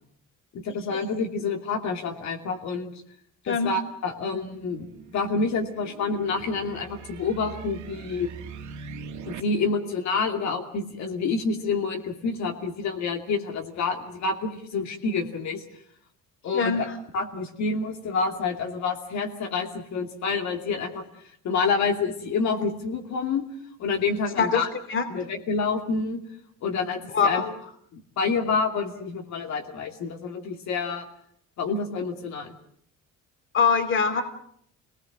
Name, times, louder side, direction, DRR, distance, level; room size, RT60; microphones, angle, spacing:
voice 1, 0.5-2.9 3.4-4.9 5.1-8.3 9.3-15.6 16.4-16.8 17.1-21.0 21.4-23.4 23.8-24.7 25.1-26.2 26.6-27.4 27.9-31.0 31.6-32.5, left 4 dB, 60° left, 3 dB, 2.7 m, -28 dB
voice 2, 3.5-3.8 16.5-16.9 24.4-24.6 24.9-25.0 27.1-27.5 33.5-34.2, left 5 dB, 40° left, 8 dB, 2.7 m, -23 dB
sound 1, 4.4-9.4, right 6 dB, 65° right, 2.5 m, -42 dB
28.0 x 19.0 x 7.6 m, 0.67 s
cardioid pair, 155°, 31 cm